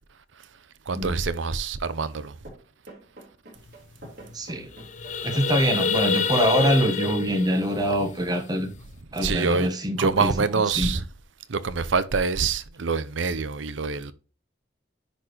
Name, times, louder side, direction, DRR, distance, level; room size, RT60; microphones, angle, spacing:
voice 1, 0.9-2.3 9.2-9.7 10.0-11.0 11.5-14.1, right 4 dB, 90° right, 0.7 m, -25 dB
sound 1, 2.0-2.2 2.4-6.8, right 1 dB, 50° right, 4.0 m, -45 dB
sound 2, 3.7-3.8 4.0-4.2 4.6-8.9, left 5 dB, 40° left, 0.6 m, -28 dB
voice 2, 4.3-4.7 5.2-8.7 9.1-10.9, equal, 20° right, 1.3 m, -24 dB
10.0 x 4.3 x 3.1 m
head